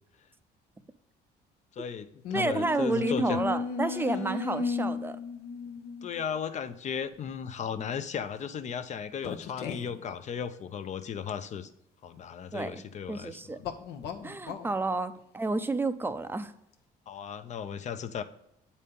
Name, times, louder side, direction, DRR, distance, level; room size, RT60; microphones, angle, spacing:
voice 1, 1.7-3.4 6.0-11.7 12.0-13.6 17.1-18.2, left 7 dB, 45° left, 11 dB, 0.7 m, -36 dB
sound 1, 2.2-6.2 7.1-7.3 9.2-10.0 13.6-14.7, left 5 dB, 75° left, 0.9 m, -34 dB
voice 2, 2.3-5.2 12.5-13.6 14.2-16.5, right 3 dB, 10° right, 11 dB, 0.5 m, -30 dB
8.4 x 4.2 x 5.3 m, 0.80 s
cardioid pair, 110°, 17 cm